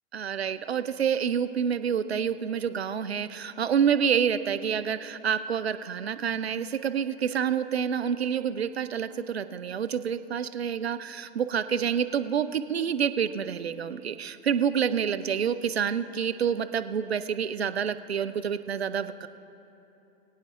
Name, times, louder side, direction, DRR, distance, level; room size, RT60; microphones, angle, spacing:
voice 1, 0.1-19.3, right 7 dB, 90° right, 12 dB, 0.5 m, -28 dB
22.0 x 8.8 x 3.7 m, 3.0 s
figure-of-eight pair, 90°, 30 cm